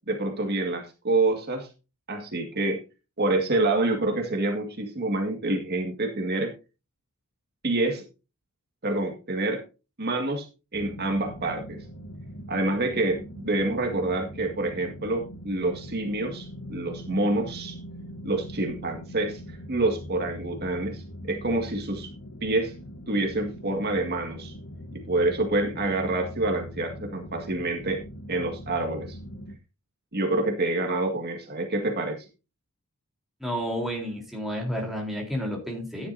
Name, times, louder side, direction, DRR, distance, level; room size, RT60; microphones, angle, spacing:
voice 1, 0.1-1.7 2.1-2.8 3.2-6.5 7.6-8.0 8.8-9.6 10.0-10.5 10.7-11.8 12.5-17.8 18.2-22.1 22.4-22.7 23.1-24.5 24.9-28.0 28.3-29.2 30.1-32.3, right 2 dB, 45° right, 3 dB, 1.9 m, -27 dB
sound 1, 10.7-29.6, equal, 75° left, 1.2 m, -41 dB
voice 2, 33.4-36.1, equal, ahead, -1 dB, 3.7 m, -31 dB
13.5 x 10.5 x 2.7 m, 0.30 s
head